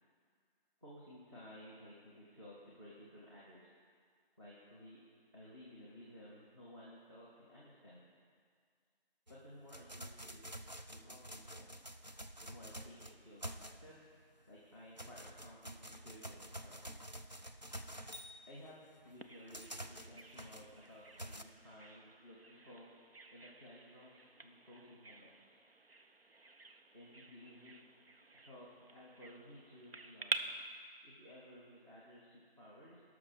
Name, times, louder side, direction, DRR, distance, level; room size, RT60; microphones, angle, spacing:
voice 1, 0.8-3.7 4.4-5.0 5.3-8.0 9.3-10.4 10.9-11.7 12.4-16.8 18.5-22.9 23.3-25.5 26.9-27.9 28.3-30.6 31.0-33.0, left 1 dB, 25° right, -8 dB, 1.6 m, -56 dB
sound 1, 9.3-14.1 14.5-21.4, equal, 45° right, 0.4 m, -49 dB
Bird vocalization bird call bird song, 19.2-30.4, right 4 dB, 80° right, 0.7 m, -49 dB
17.5 x 6.4 x 3.9 m, 2.1 s
figure-of-eight pair, 175°, 30 cm